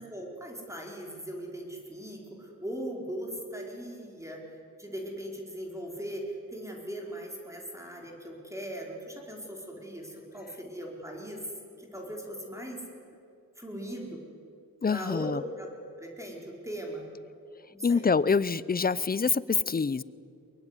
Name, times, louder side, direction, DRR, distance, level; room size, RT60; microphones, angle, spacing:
voice 1, 0.0-11.4 11.8-12.8 13.6-14.2 14.9-15.7 16.0-17.1 17.7-18.0, right 1 dB, 10° right, -1 dB, 4.5 m, -39 dB
voice 2, 14.8-15.4 17.8-20.0, left 5 dB, 25° left, 19 dB, 0.6 m, -26 dB
23.0 x 22.0 x 9.8 m, 2.5 s
wide cardioid pair, 115°, 34 cm